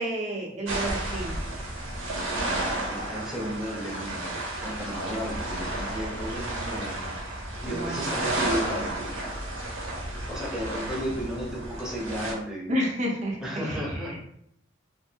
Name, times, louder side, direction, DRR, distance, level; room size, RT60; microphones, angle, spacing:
voice 1, 0.0-1.4 7.7-8.3 12.7-14.2, equal, 35° right, -1 dB, 0.6 m, -31 dB
sound 1, 0.7-12.3, right 1 dB, 85° right, 0.7 m, -32 dB
voice 2, 2.5-7.1 7.6-9.1 10.3-12.7 13.4-14.2, equal, 5° right, -5 dB, 0.7 m, -34 dB
2.6 x 2.5 x 2.7 m, 0.73 s
head